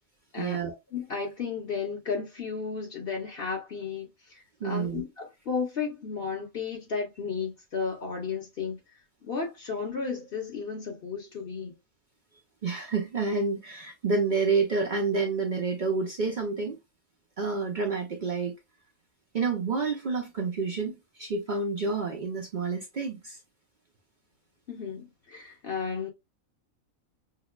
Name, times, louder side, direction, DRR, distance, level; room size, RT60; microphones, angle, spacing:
voice 1, 0.4-0.7 4.6-5.0 12.6-16.8 17.4-18.5 19.3-23.4, right 4 dB, 60° right, 0.5 m, -29 dB
voice 2, 0.9-8.8 9.2-11.8 24.7-26.1, left 5 dB, 45° left, 1.0 m, -33 dB
5.7 x 2.0 x 2.2 m
omnidirectional pair, 1.5 m